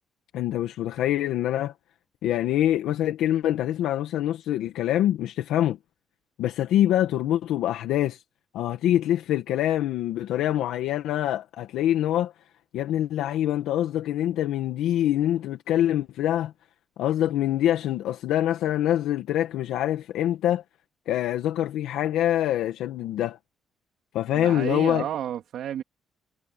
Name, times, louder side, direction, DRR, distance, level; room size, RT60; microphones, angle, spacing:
voice 1, 0.3-1.7 2.2-5.8 6.4-8.2 8.5-12.3 12.7-16.5 17.0-20.6 21.1-23.4 24.1-25.0, left 12 dB, 85° left, 1.5 m, -25 dB
voice 2, 24.3-25.8, right 10 dB, 75° right, 3.0 m, -31 dB
cardioid pair, 90°, 0 cm